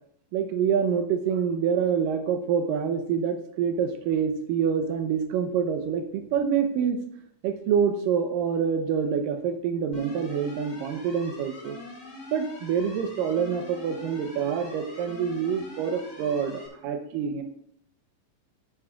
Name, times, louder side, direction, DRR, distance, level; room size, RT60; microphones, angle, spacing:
voice 1, 0.3-7.0 7.4-11.8 12.3-17.4, right 7 dB, 85° right, 6 dB, 1.9 m, -26 dB
sound 1, 9.9-16.7, left 1 dB, 25° left, 4.0 m, -43 dB
14.5 x 8.7 x 2.4 m, 0.69 s
omnidirectional pair, 4.9 m